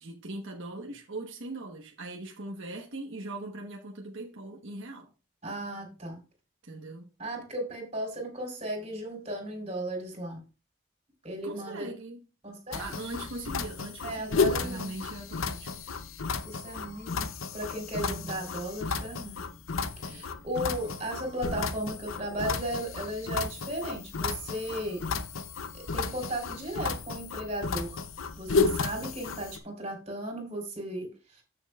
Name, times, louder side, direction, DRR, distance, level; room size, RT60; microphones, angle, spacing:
voice 1, 0.0-5.1 6.6-7.1 11.4-12.2 12.8-15.7 17.9-18.4 20.0-20.3, right 2 dB, 75° right, 1.3 m, -40 dB
voice 2, 5.4-6.2 7.2-10.4 11.2-11.9 12.4-13.0 14.0-14.9 16.4-19.4 20.0-25.0 25.7-28.0 28.4-31.4, right 1 dB, 30° right, 3.9 m, -36 dB
sound 1, 12.7-29.6, left 4 dB, 85° left, 0.7 m, -33 dB
14.0 x 6.4 x 2.4 m
head